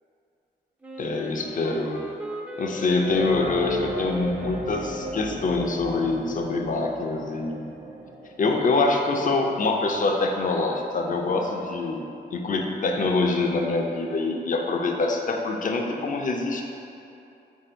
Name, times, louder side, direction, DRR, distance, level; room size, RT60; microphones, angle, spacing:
Wind instrument woodwind instrument, 0.8-5.9, equal, 10° right, 0.4 m, -38 dB
voice 1, 1.0-2.0 2.6-7.7 8.4-12.0 12.3-16.6, left 3 dB, 50° left, 2 dB, 0.5 m, -25 dB
sound 1, 3.1-10.5, right 1 dB, 75° right, 0.8 m, -36 dB
3.6 x 2.6 x 4.3 m, 2.7 s
cardioid pair, 70°, 18 cm